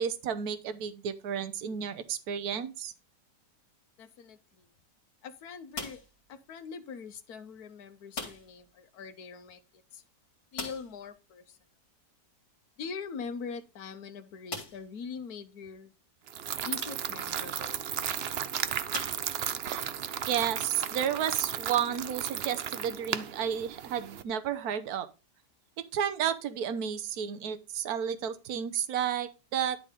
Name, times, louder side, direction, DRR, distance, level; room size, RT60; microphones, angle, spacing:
voice 1, 0.0-2.9 20.3-25.1 25.9-29.8, right 8 dB, 65° right, 10 dB, 1.3 m, -32 dB
voice 2, 4.0-4.7 5.2-6.0 6.3-10.0 10.5-11.6 12.8-15.9 16.5-17.9, left 5 dB, 65° left, 10 dB, 1.4 m, -42 dB
sound 1, 5.7-6.3 8.1-8.7 8.9-9.0 9.3-9.4 10.5-11.1 12.8-12.9 13.6-13.7 14.5-15.0 15.7-15.8 17.8-18.0 18.9-19.8, left 3 dB, 45° left, 2.5 m, -41 dB
sound 2, 16.3-24.2, right 9 dB, 85° right, 0.5 m, -34 dB
10.5 x 4.0 x 5.0 m, 0.29 s
omnidirectional pair, 1.8 m